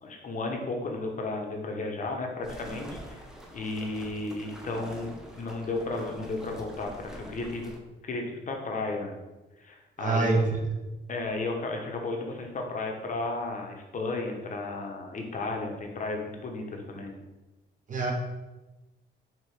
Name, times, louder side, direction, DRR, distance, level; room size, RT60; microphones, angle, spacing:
voice 1, 0.0-3.2 3.5-5.1 5.4-7.7 8.0-9.1 9.6-10.4 11.1-17.2, left 2 dB, 40° left, 2 dB, 0.8 m, -33 dB
sound 1, 2.4-7.8, equal, 5° right, 0.6 m, -45 dB
voice 2, 10.0-10.6 17.9-18.1, right 4 dB, 40° right, 1 dB, 0.9 m, -25 dB
4.3 x 2.9 x 3.2 m, 1.1 s
cardioid pair, 90°, 20 cm